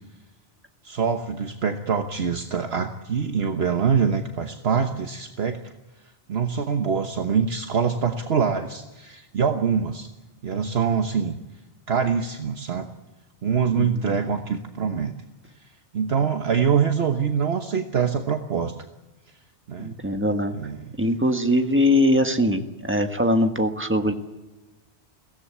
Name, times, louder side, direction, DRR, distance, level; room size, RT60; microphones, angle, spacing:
voice 1, 0.8-5.6 6.3-10.1 10.4-11.4 11.9-12.9 13.4-15.1 15.9-18.7 19.7-19.9 20.5-20.8, right 6 dB, 60° right, 6 dB, 1.4 m, -24 dB
voice 2, 13.7-14.1 19.8-20.5 21.0-24.1, left 1 dB, 10° right, 6 dB, 1.5 m, -22 dB
22.5 x 17.0 x 8.6 m, 1.1 s
omnidirectional pair, 1.2 m